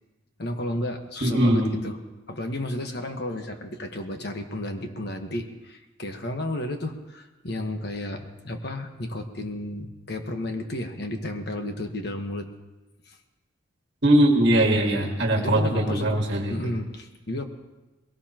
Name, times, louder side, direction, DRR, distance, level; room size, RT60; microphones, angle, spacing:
voice 1, 0.4-2.0 2.3-12.5 13.1-13.2 14.8-16.1 16.5-17.5, left 1 dB, 55° left, 5 dB, 1.4 m, -32 dB
voice 2, 1.2-1.7 14.0-16.7, right 1 dB, 60° right, 0 dB, 1.7 m, -21 dB
21.0 x 18.0 x 3.0 m, 1.1 s
head